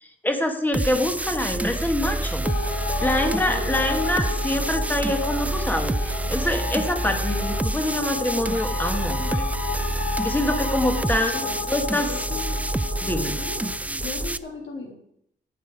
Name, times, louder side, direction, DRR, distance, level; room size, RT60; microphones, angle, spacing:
voice 1, 0.2-2.4 3.0-9.5 10.2-11.4 11.7-12.1 13.0-13.4, left 1 dB, 10° left, 5 dB, 1.8 m, -25 dB
sound 1, 0.7-14.4, right 2 dB, 10° right, 0.4 m, -27 dB
sound 2, 2.4-13.8, left 6 dB, 60° left, 1.5 m, -33 dB
voice 2, 11.0-11.6 12.0-12.4 13.2-13.6 14.0-14.9, left 3 dB, 80° left, -1 dB, 3.3 m, -36 dB
14.0 x 9.4 x 4.8 m, 0.73 s
wide cardioid pair, 125°, 18 cm